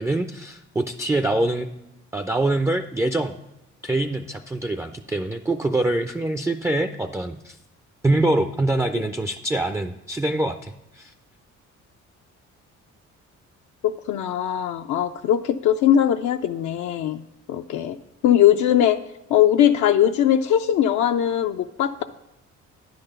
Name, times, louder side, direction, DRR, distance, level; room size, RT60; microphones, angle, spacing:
voice 1, 0.0-1.7 2.1-3.4 3.8-7.6 8.0-11.1, right 2 dB, 10° right, 7 dB, 0.3 m, -24 dB
voice 2, 13.8-17.2 17.5-18.0 18.2-19.0 19.3-22.0, left 10 dB, 75° left, 6 dB, 0.5 m, -20 dB
9.8 x 4.0 x 6.5 m, 0.90 s
cardioid pair, 90°, 30 cm